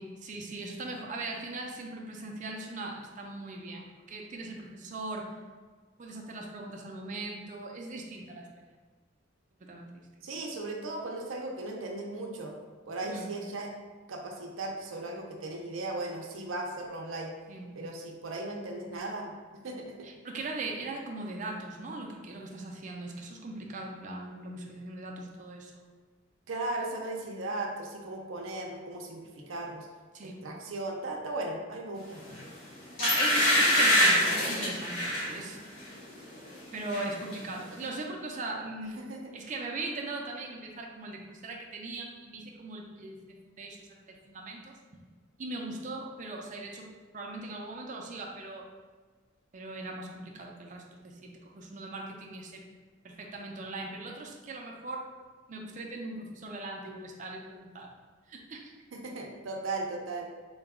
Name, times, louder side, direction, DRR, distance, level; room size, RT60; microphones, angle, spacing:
voice 1, 0.0-5.3 6.0-8.5 9.6-10.3 13.0-13.3 17.5-17.7 20.0-25.9 30.1-30.4 33.0-35.7 36.7-39.0 39.3-43.2 43.4-44.8 45.4-46.9 47.1-48.6 49.5-52.6 53.0-55.0 55.5-57.9 58.3-58.7, right 2 dB, 40° right, 0 dB, 0.5 m, -40 dB
voice 2, 10.2-12.5 12.9-13.7 14.1-17.3 17.8-19.3 19.6-20.0 26.5-29.9 30.2-32.2 39.0-39.2 58.9-60.3, right 2 dB, 85° right, 0 dB, 0.5 m, -37 dB
sound 1, 32.3-32.5 33.0-35.3 35.8-36.0 36.3-37.0 37.3-37.4, left 1 dB, 90° left, 1.5 m, -24 dB
3.9 x 2.2 x 3.5 m, 1.4 s
head